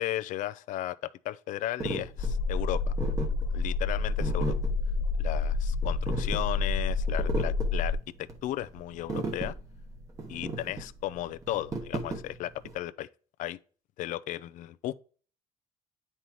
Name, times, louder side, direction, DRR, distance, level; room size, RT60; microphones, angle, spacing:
voice 1, 0.0-2.9 3.5-4.5 5.2-9.5 10.3-13.1 13.4-13.6 14.0-14.9, left 14 dB, 90° left, 0.4 m, -35 dB
sound 1, 1.8-12.7, right 3 dB, 25° right, 1.0 m, -36 dB
sound 2, 2.2-8.0, left 3 dB, 70° left, 1.3 m, -29 dB
9.8 x 5.4 x 3.0 m
cardioid pair, 180°, 13 cm